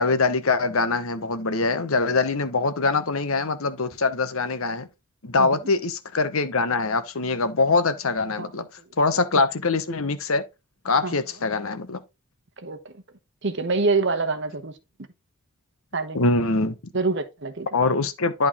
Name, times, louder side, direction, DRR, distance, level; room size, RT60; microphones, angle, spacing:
voice 1, 0.0-4.9 5.2-8.7 9.0-10.4 10.8-12.0 16.1-16.9 17.7-18.5, left 3 dB, 70° left, 0.9 m, -23 dB
voice 2, 12.6-12.9 13.4-14.7 15.9-16.2 16.9-17.7, right 3 dB, 50° right, 1.0 m, -25 dB
11.0 x 3.9 x 3.6 m
head